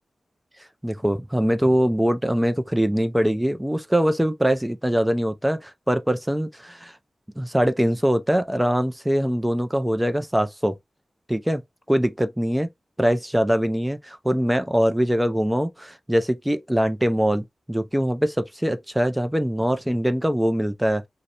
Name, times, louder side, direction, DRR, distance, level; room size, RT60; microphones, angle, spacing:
voice 1, 0.8-6.9 7.4-10.7 11.3-11.6 11.9-12.7 13.0-21.0, equal, 5° right, 0.4 m, -22 dB
2.4 x 2.1 x 2.7 m
wide cardioid pair, 125°, 0 cm